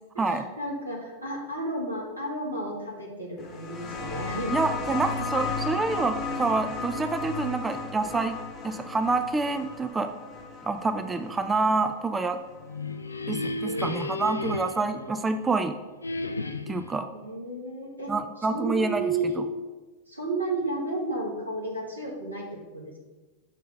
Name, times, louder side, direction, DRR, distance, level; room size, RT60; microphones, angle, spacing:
voice 1, 0.1-4.5 11.2-11.4 13.6-14.2 17.2-19.4 20.1-23.0, right 2 dB, 85° right, -3 dB, 1.9 m, -33 dB
sound 1, 3.4-12.7 13.8-13.9, left 4 dB, 30° left, 1.4 m, -35 dB
voice 2, 4.5-8.4 8.6-10.1 10.6-12.4 13.3-15.7 16.7-17.1 18.1-19.0, right 3 dB, 15° right, 8 dB, 0.4 m, -27 dB
sound 2, 12.5-15.6 16.0-17.0, left 2 dB, 80° left, 0.3 m, -33 dB
6.4 x 3.7 x 5.6 m, 1.2 s
figure-of-eight pair, 90°, 0 cm